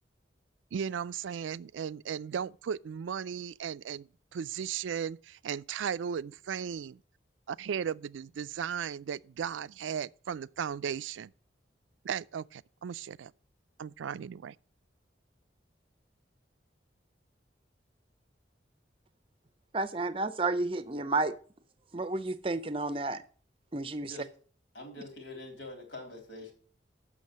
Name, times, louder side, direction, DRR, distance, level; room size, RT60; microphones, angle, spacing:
voice 1, 0.7-7.0 7.5-11.3 12.0-13.3 13.8-14.5, right 7 dB, 90° right, 0.4 m, -36 dB
voice 2, 19.7-21.4 21.9-23.2 23.7-24.1, right 3 dB, 30° right, 0.5 m, -31 dB
voice 3, 24.7-26.5, left 2 dB, 85° left, 3.4 m, -45 dB
7.3 x 6.3 x 7.5 m
head